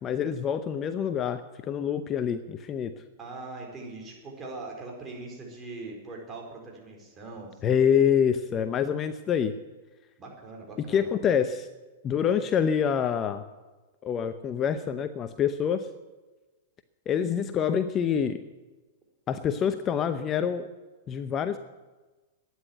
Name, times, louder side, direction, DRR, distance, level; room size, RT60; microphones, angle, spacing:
voice 1, 0.0-2.9 7.6-9.6 10.9-11.7 12.0-13.4 14.0-15.9 17.1-18.4 19.3-20.7 21.1-21.6, left 8 dB, 30° left, 10 dB, 0.8 m, -26 dB
voice 2, 3.2-7.8 10.2-11.1, right 3 dB, 20° right, 0 dB, 4.6 m, -41 dB
12.5 x 10.0 x 9.1 m, 1.2 s
hypercardioid pair, 125°, 0 cm